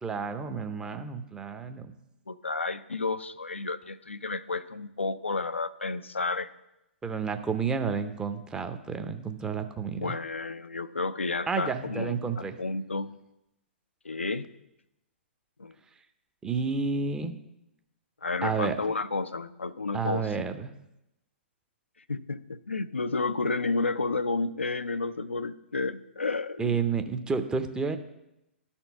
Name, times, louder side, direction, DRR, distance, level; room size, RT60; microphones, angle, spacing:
voice 1, 0.0-1.9 7.0-10.1 11.5-12.6 16.4-17.4 18.4-18.8 19.9-20.7 26.6-28.0, right 5 dB, 10° right, 8 dB, 0.6 m, -30 dB
voice 2, 2.3-6.5 10.0-12.2 12.6-13.1 14.0-14.5 15.6-15.7 18.2-20.5 22.1-26.8, left 3 dB, 90° left, 12 dB, 0.4 m, -31 dB
12.0 x 4.4 x 5.8 m, 0.89 s
figure-of-eight pair, 115°, 6 cm